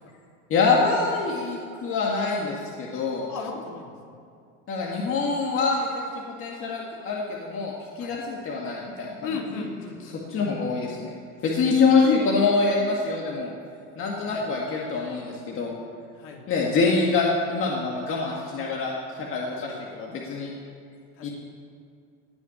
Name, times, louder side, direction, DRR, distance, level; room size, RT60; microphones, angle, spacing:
voice 1, 0.5-3.3 4.7-6.0 6.4-9.6 10.0-11.1 11.4-13.5 14.0-15.7 16.5-20.5 21.2-21.3, left 4 dB, 35° left, -2 dB, 2.0 m, -25 dB
voice 2, 3.3-4.2 8.0-8.1 9.2-10.7 14.2-14.4 16.2-16.4 19.5-19.6 21.2-21.3, left 4 dB, 55° left, 0 dB, 3.2 m, -36 dB
18.0 x 6.1 x 9.9 m, 2.4 s
supercardioid pair, 130°, 35 cm